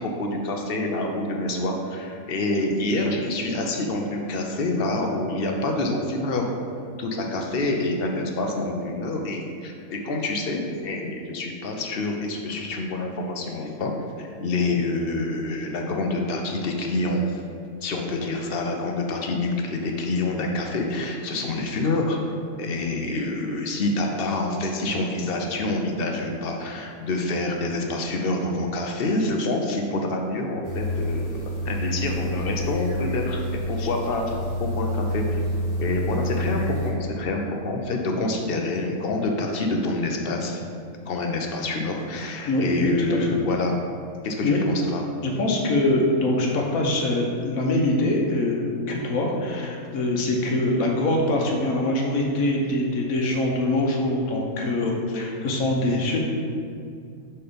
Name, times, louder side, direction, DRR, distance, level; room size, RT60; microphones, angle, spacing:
voice 1, 0.0-6.5 7.0-13.9 14.2-17.4 17.8-22.2 22.6-34.3 34.6-35.2 35.8-40.6 41.1-43.8 44.2-45.0, left 2 dB, 50° left, 2 dB, 0.8 m, -27 dB
sound 1, 30.6-36.9, equal, 30° left, 1.1 m, -28 dB
voice 2, 42.5-43.4 44.4-44.7 45.2-56.2, left 1 dB, 75° left, 0 dB, 1.3 m, -23 dB
5.7 x 4.2 x 5.1 m, 2.4 s
omnidirectional pair, 1.5 m